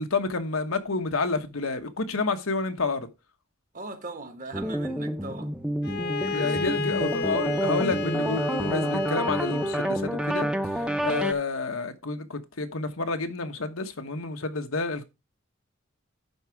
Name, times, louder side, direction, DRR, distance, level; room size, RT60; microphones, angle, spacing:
voice 1, 0.0-3.1 6.1-15.0, left 3 dB, 90° left, 1.3 m, -29 dB
voice 2, 3.7-5.5 5.8-6.0 6.3-6.9 11.1-11.4, right 3 dB, 40° right, 1.3 m, -40 dB
sound 1, 4.5-11.3, equal, 5° right, 0.7 m, -29 dB
Bowed string instrument, 5.8-10.0, left 4 dB, 50° left, 0.7 m, -32 dB
11.0 x 4.8 x 4.7 m
head